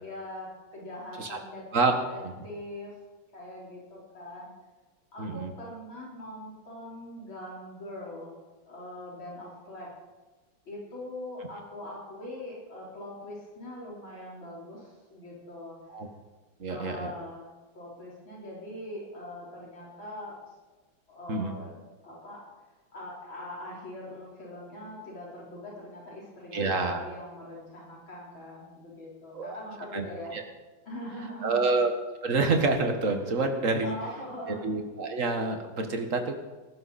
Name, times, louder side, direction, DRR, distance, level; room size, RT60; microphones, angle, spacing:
voice 1, 0.0-1.7 1.9-2.9 3.3-4.5 5.1-8.3 8.7-9.9 10.7-15.8 16.7-17.5 17.7-20.5 21.1-22.4 22.9-30.3 30.9-31.6 33.8-34.7, left 1 dB, 65° left, -5 dB, 5.2 m, -42 dB
voice 2, 5.2-5.5 15.9-16.1 16.6-17.1 21.3-21.5 26.5-27.0 29.3-29.6 29.9-30.1 30.3-30.4 31.4-31.9 32.2-34.0 34.6-36.4, right 3 dB, 40° right, 5 dB, 1.9 m, -27 dB
18.5 x 15.0 x 4.3 m, 1.2 s
omnidirectional pair, 2.3 m